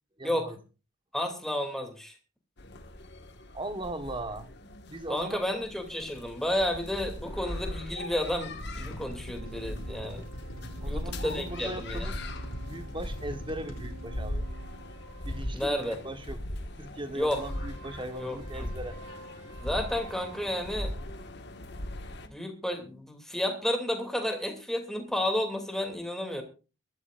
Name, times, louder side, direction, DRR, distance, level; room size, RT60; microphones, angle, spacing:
voice 1, 0.2-0.6 3.5-4.5 4.9-5.4 10.8-12.2 12.6-14.5 15.2-16.4 16.8-19.0, right 1 dB, 20° right, 1.3 m, -39 dB
voice 2, 1.1-2.2 5.1-10.2 10.8-12.1 15.5-16.0 17.1-17.4 18.2-18.7 19.6-20.9 22.3-26.4, left 1 dB, ahead, 2.6 m, -31 dB
sound 1, 2.6-22.3, left 1 dB, 50° left, 1.6 m, -39 dB
sound 2, 8.4-14.0, equal, 75° left, 3.2 m, -42 dB
sound 3, 9.4-15.4 17.4-20.8, right 3 dB, 90° right, 3.8 m, -50 dB
22.5 x 13.0 x 2.5 m
head